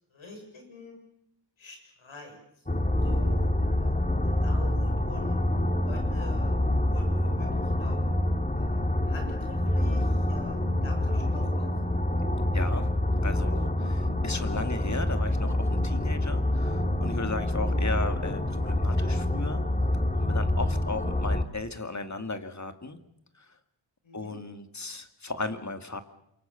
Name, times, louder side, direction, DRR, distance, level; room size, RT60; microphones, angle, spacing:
voice 1, 0.1-1.0 1.6-2.4 3.0-5.4 5.7-6.6 6.9-8.0 8.6-11.7 14.7-14.9 17.5-17.8 20.9-21.0 24.0-24.4, left 1 dB, 85° left, 3 dB, 7.0 m, -46 dB
sound 1, 2.7-21.4, left 1 dB, 15° left, 2.3 m, -26 dB
voice 2, 12.5-12.9 13.2-19.6 20.1-23.0 23.4-23.5 24.1-26.0, left 3 dB, 35° left, 8 dB, 2.5 m, -35 dB
27.5 x 24.5 x 7.1 m, 0.79 s
cardioid pair, 55°, 46 cm